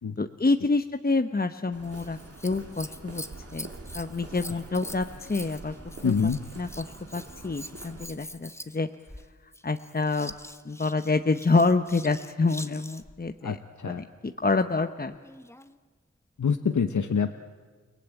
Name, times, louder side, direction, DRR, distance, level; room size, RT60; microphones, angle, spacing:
voice 1, 0.2-3.2 3.5-3.7 3.9-5.7 6.0-6.1 6.6-8.9 9.6-10.3 10.6-13.6 13.8-15.2, left 3 dB, 30° left, 8 dB, 0.9 m, -27 dB
Walk footsteps, 1.7-8.1, right 2 dB, 50° right, 3.2 m, -45 dB
Scissors, 1.8-13.2 15.1-15.8 16.5-16.6, left 1 dB, 10° left, 1.1 m, -44 dB
voice 2, 6.0-6.4 13.4-14.0 16.4-17.3, left 6 dB, 75° left, 8 dB, 1.0 m, -26 dB
29.5 x 18.5 x 9.0 m, 1.5 s
wide cardioid pair, 75°, 30 cm